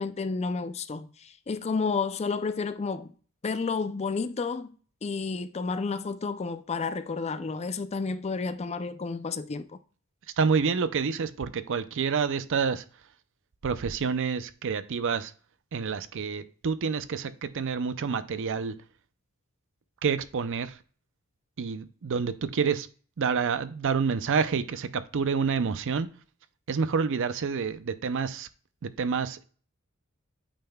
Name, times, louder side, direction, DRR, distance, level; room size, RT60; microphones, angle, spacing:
voice 1, 0.0-3.1 3.4-4.7 5.0-9.7, left 4 dB, 30° left, 0.4 m, -31 dB
voice 2, 10.4-12.8 13.6-15.3 15.7-18.7 20.0-20.8 21.6-22.9 23.2-26.1 26.7-28.5 28.8-29.4, right 5 dB, 60° right, 0.5 m, -28 dB
8.7 x 5.6 x 2.3 m
head